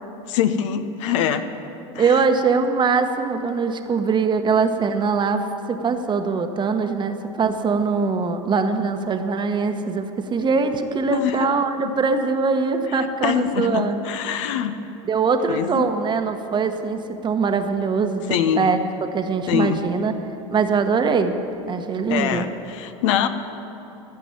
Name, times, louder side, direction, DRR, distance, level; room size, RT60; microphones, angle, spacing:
voice 1, 0.3-1.4 1.9-2.2 11.1-11.5 13.0-14.7 15.5-15.9 18.3-18.8 19.5-19.8 22.1-23.3, left 9 dB, 70° left, 9 dB, 0.9 m, -24 dB
voice 2, 2.0-14.0 15.0-18.8 19.1-20.2 20.5-21.3 21.7-22.5, right 5 dB, 30° right, 7 dB, 1.1 m, -22 dB
16.0 x 5.9 x 9.7 m, 2.9 s
hypercardioid pair, 95°, 16 cm